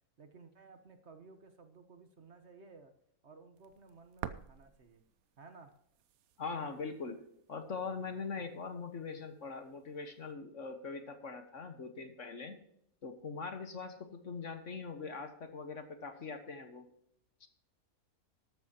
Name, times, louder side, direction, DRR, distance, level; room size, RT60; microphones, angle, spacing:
voice 1, 0.2-2.9 3.2-5.0 5.4-5.8, right 4 dB, 50° right, 8 dB, 1.4 m, -56 dB
sound 1, 3.6-10.3, right 10 dB, 75° right, 1.1 m, -52 dB
voice 2, 6.4-7.2 7.5-12.6 13.0-16.9 17.4-17.5, left 4 dB, 55° left, 7 dB, 1.7 m, -42 dB
13.5 x 12.5 x 2.9 m, 0.72 s
omnidirectional pair, 1.5 m